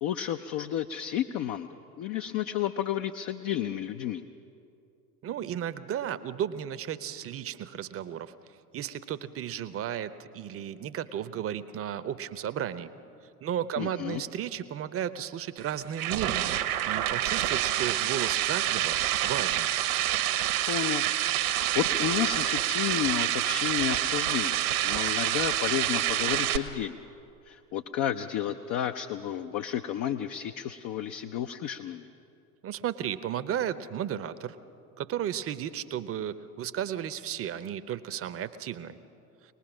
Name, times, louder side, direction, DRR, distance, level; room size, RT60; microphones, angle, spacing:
voice 1, 0.0-4.2 13.8-14.2 20.7-21.1 21.4-27.0 27.4-32.1, left 10 dB, 40° left, 7 dB, 0.7 m, -32 dB
voice 2, 5.2-8.3 8.7-12.9 13.4-16.5 16.9-19.7 32.6-34.6 35.0-39.0, right 10 dB, 30° right, 13 dB, 0.8 m, -34 dB
sound 1, 15.6-26.6, right 13 dB, 65° right, 1.2 m, -27 dB
23.5 x 19.5 x 6.2 m, 2.8 s
figure-of-eight pair, 75°, 47 cm